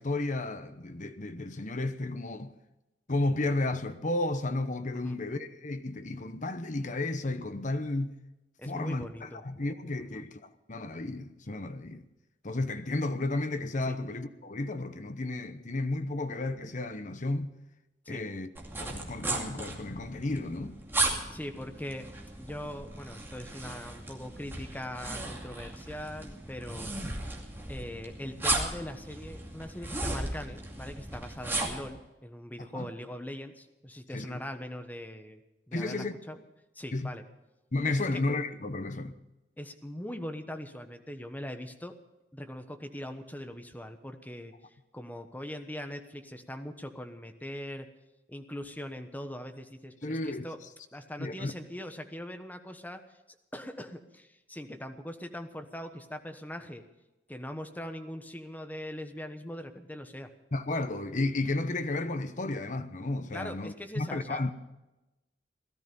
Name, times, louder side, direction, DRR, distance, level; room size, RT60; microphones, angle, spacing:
voice 1, 0.0-2.5 3.1-8.1 8.6-12.1 12.4-17.5 18.1-18.5 18.8-20.8 32.7-32.9 34.1-34.4 35.7-36.1 36.9-37.1 37.7-39.2 50.0-50.4 51.2-51.5 60.5-64.5, left 2 dB, 45° left, 1.0 m, -33 dB
voice 2, 8.6-9.5 10.0-10.2 13.9-14.0 18.0-18.2 20.6-20.7 21.3-22.1 22.4-27.3 27.7-35.4 35.7-36.4 36.7-37.2 37.9-38.2 39.6-41.9 42.3-44.5 44.9-47.9 48.3-50.6 50.9-53.0 53.5-56.8 57.3-60.3 63.3-64.4, left 1 dB, 10° left, 1.2 m, -41 dB
sound 1, 18.6-31.9, right 2 dB, 15° right, 2.5 m, -36 dB
17.5 x 13.0 x 5.5 m
head